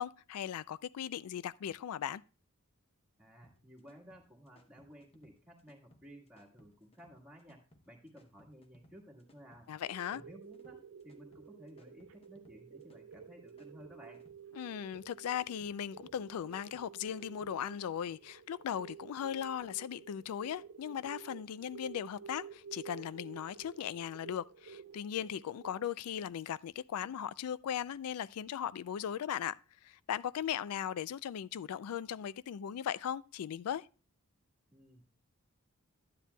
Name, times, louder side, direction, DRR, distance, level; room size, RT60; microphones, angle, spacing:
voice 1, 0.0-2.2 9.7-10.2 14.5-33.9, left 9 dB, 85° left, 0.3 m, -38 dB
voice 2, 3.2-9.8 10.1-14.2 34.7-35.0, equal, 5° right, 1.5 m, -56 dB
sound 1, 3.4-17.9, equal, 25° left, 0.8 m, -66 dB
sound 2, 9.9-25.9, right 7 dB, 65° right, 0.4 m, -52 dB
11.5 x 10.0 x 2.2 m
head